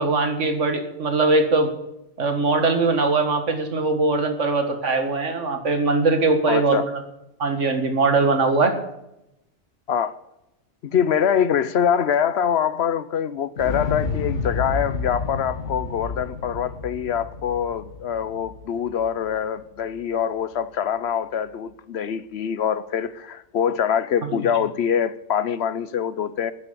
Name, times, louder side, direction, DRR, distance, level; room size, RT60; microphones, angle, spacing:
voice 1, 0.0-1.7 2.2-6.8 7.4-8.8 24.3-24.4, right 3 dB, 85° right, 2.0 m, -21 dB
voice 2, 6.5-6.8 9.9-10.2 10.8-26.5, left 8 dB, 65° left, 0.9 m, -24 dB
Explosion, 13.6-19.6 19.9-20.0, left 4 dB, 80° left, 1.7 m, -30 dB
14.0 x 10.0 x 6.8 m
omnidirectional pair, 1.2 m